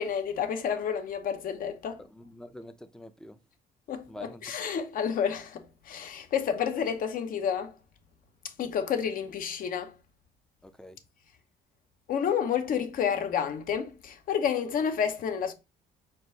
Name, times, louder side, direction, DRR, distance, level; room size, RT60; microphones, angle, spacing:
voice 1, 0.0-2.0 3.9-7.7 8.6-9.9 12.1-15.5, left 7 dB, 55° left, 0.8 m, -30 dB
voice 2, 2.0-3.4 4.1-4.5 10.6-11.0, left 1 dB, 5° left, 0.4 m, -46 dB
4.5 x 2.5 x 3.9 m
cardioid pair, 110°, 17 cm